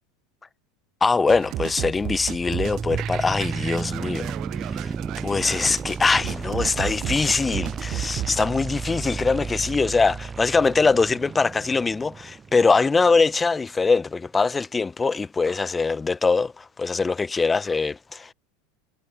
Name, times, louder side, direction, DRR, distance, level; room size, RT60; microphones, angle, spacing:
voice 1, 1.0-4.3 4.8-4.9 5.2-18.3, left 4 dB, 15° left, 0.6 m, -22 dB
sound 1, 1.3-8.5, right 15 dB, 50° right, 0.7 m, -34 dB
sound 2, 1.5-13.5, right 5 dB, 20° right, 4.1 m, -33 dB
hypercardioid pair, 95°, 0 cm